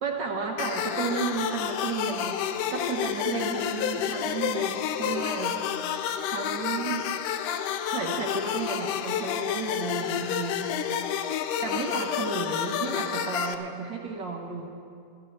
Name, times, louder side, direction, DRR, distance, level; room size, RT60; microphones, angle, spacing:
voice 1, 0.0-2.4 2.7-5.6 6.2-7.1 7.8-10.8 11.4-14.7, right 4 dB, 50° right, 1 dB, 1.4 m, -33 dB
sound 1, 0.6-13.5, left 9 dB, 85° left, 2.2 m, -30 dB
28.5 x 12.5 x 3.3 m, 2.4 s
omnidirectional pair, 3.6 m